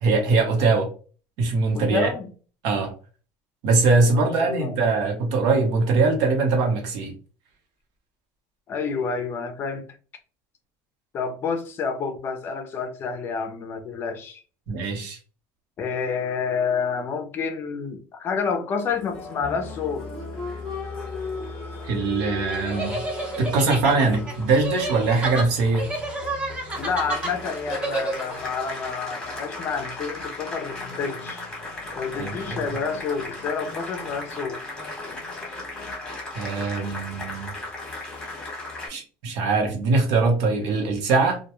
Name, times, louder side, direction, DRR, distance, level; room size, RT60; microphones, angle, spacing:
voice 1, 0.0-0.9 1.4-2.1 2.6-2.9 3.6-7.1 14.7-15.2 21.8-23.0 23.4-25.9 32.2-32.6 36.3-37.5 38.9-41.4, right 3 dB, 65° right, 0.9 m, -22 dB
voice 2, 1.7-2.3 4.1-4.7 8.7-9.8 11.1-14.4 15.8-20.1 26.8-31.4 31.9-34.6, left 5 dB, 35° left, 0.5 m, -29 dB
Applause, 18.9-38.9, left 3 dB, 10° left, 1.0 m, -36 dB
sound 1, 22.5-28.5, right 2 dB, 15° right, 0.7 m, -31 dB
2.2 x 2.2 x 2.9 m
cardioid pair, 150°, 7 cm